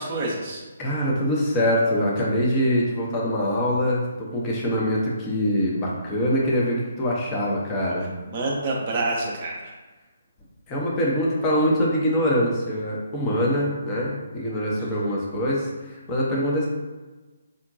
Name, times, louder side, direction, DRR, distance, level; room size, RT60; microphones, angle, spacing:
voice 1, 0.0-0.6 7.9-9.7 14.8-15.2, right 2 dB, 35° right, -2 dB, 0.5 m, -29 dB
voice 2, 0.8-8.1 10.7-16.7, equal, 20° left, -4 dB, 0.6 m, -24 dB
3.7 x 2.2 x 2.6 m, 1.2 s
figure-of-eight pair, 140°, 0 cm